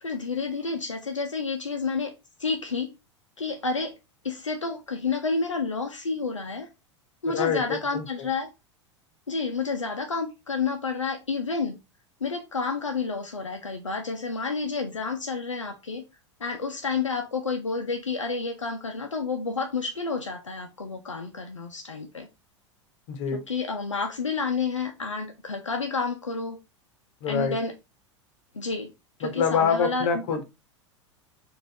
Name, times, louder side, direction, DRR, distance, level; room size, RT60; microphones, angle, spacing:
voice 1, 0.0-2.1 2.4-2.9 3.4-4.0 4.2-6.7 7.2-8.5 9.3-11.8 12.2-16.0 16.4-22.3 23.3-26.6 27.3-27.7 28.5-28.9 29.2-30.4, left 4 dB, 85° left, 0.6 m, -30 dB
voice 2, 7.3-8.0 23.1-23.4 27.2-27.5 29.2-30.4, left 6 dB, 50° left, 1.1 m, -25 dB
4.0 x 2.6 x 3.8 m
figure-of-eight pair, 85°, 16 cm